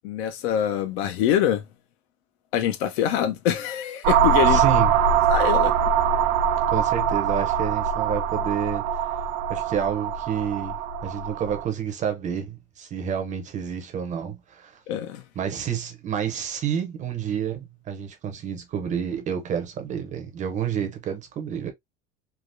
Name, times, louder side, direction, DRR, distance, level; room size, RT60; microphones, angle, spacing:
voice 1, 0.0-1.6 2.5-4.6 5.3-5.9 14.9-15.2, left 10 dB, 85° left, 0.8 m, -24 dB
sound 1, 4.0-11.7, right 8 dB, 75° right, 0.5 m, -22 dB
voice 2, 4.5-4.9 6.7-8.8 9.5-10.8 11.0-14.8 15.4-21.7, right 8 dB, 25° right, 0.5 m, -29 dB
3.3 x 2.3 x 2.5 m
cardioid pair, 165°, 31 cm